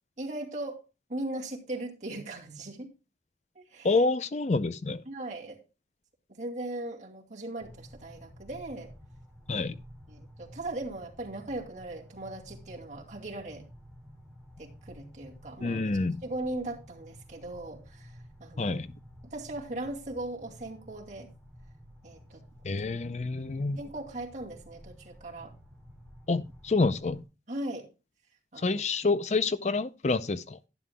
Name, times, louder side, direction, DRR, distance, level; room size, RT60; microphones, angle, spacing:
voice 1, 0.2-0.8 1.1-2.9 3.5-3.9 5.1-5.6 6.3-8.9 10.1-13.7 14.6-15.8 16.2-18.1 18.4-18.8 19.2-21.3 22.0-22.4 22.8-22.9 23.8-25.5 27.5-27.9 28.5-28.8, right 2 dB, 40° right, 2.4 m, -38 dB
voice 2, 3.8-5.0 9.5-9.7 15.6-16.2 18.6-18.9 22.6-23.8 26.3-27.2 28.6-30.6, left 3 dB, 40° left, 0.5 m, -28 dB
sound 1, 7.6-27.2, equal, ahead, 2.8 m, -52 dB
12.0 x 11.0 x 2.2 m
head